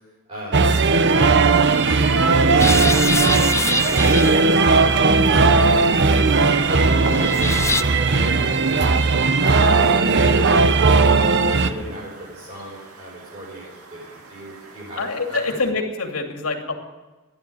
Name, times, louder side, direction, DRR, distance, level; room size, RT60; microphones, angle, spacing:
voice 1, 0.3-6.2 6.6-9.2 9.7-13.6 13.9-15.6, right 1 dB, 30° right, -9 dB, 6.7 m, -36 dB
sound 1, 0.5-11.7, right 4 dB, 55° right, 0.9 m, -17 dB
sound 2, 0.7-15.7, right 2 dB, 75° right, 2.1 m, -39 dB
sound 3, 2.6-7.8, left 4 dB, 15° left, 0.4 m, -27 dB
voice 2, 15.0-16.7, left 3 dB, 75° left, 3 dB, 2.6 m, -25 dB
14.5 x 11.5 x 8.5 m, 1.2 s
head